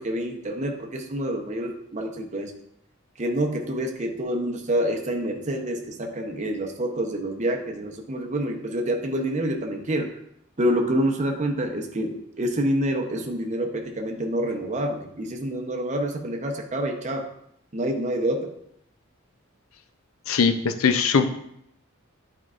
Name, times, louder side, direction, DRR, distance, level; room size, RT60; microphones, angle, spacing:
voice 1, 0.0-2.5 3.2-10.1 10.6-17.3 17.7-18.5, right 1 dB, 35° right, 3 dB, 0.7 m, -27 dB
voice 2, 20.3-21.3, left 5 dB, 80° left, 10 dB, 0.5 m, -20 dB
8.6 x 4.6 x 2.4 m, 0.75 s
head